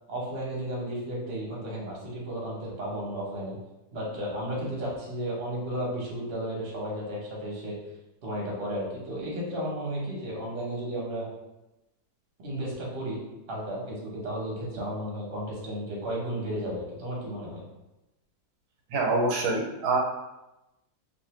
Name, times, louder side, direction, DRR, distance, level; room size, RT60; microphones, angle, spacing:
voice 1, 0.1-3.6 3.9-7.8 8.2-11.3 12.4-13.2 13.5-17.6, right 1 dB, 45° right, -4 dB, 0.9 m, -33 dB
voice 2, 18.9-20.0, right 3 dB, 80° right, -1 dB, 1.2 m, -25 dB
2.5 x 2.4 x 3.0 m, 0.96 s
omnidirectional pair, 1.7 m